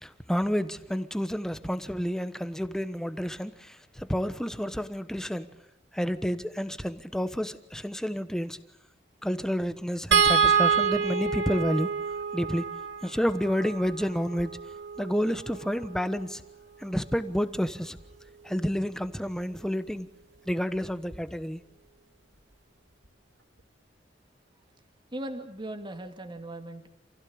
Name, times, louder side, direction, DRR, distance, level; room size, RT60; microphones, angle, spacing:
voice 1, 0.0-5.5 5.9-8.6 9.2-11.9 12.3-12.6 13.0-14.6 15.0-16.4 16.8-18.0 18.4-20.1 20.5-21.6, equal, 5° left, 1.2 m, -30 dB
sound 1, 10.1-16.4 18.0-18.1 18.5-18.6, right 6 dB, 70° right, 2.4 m, -27 dB
voice 2, 25.1-26.9, right 1 dB, 25° right, 2.2 m, -38 dB
28.0 x 16.0 x 8.8 m
head